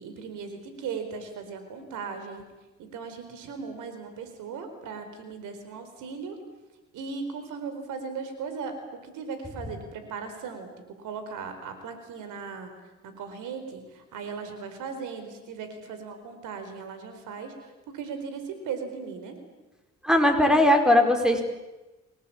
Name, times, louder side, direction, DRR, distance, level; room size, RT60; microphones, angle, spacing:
voice 1, 0.0-2.4 2.8-6.4 6.9-8.8 9.0-10.7 11.0-12.7 13.0-19.4, right 5 dB, 90° right, 8 dB, 4.5 m, -37 dB
voice 2, 20.0-21.4, left 1 dB, ahead, 5 dB, 4.7 m, -19 dB
26.5 x 18.5 x 8.8 m, 1.1 s
cardioid pair, 90°, 30 cm